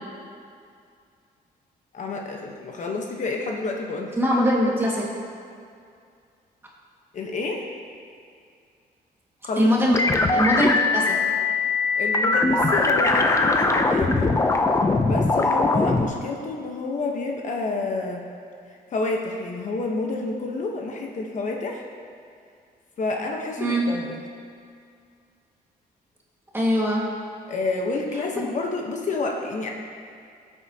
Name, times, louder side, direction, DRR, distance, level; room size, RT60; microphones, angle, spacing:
voice 1, 1.9-4.1 7.1-7.6 9.4-9.7 11.9-14.4 15.0-18.2 18.7-21.8 23.0-24.2 27.5-29.7, left 3 dB, 50° left, 1 dB, 1.1 m, -29 dB
voice 2, 4.2-5.1 9.6-10.0 10.3-11.2 23.6-23.8 26.5-27.1 28.4-28.5, equal, 15° right, -4 dB, 1.9 m, -21 dB
sound 1, 9.9-16.0, left 3 dB, 20° left, 0.6 m, -21 dB
17.5 x 8.3 x 2.9 m, 2.3 s
cardioid pair, 145°, 16 cm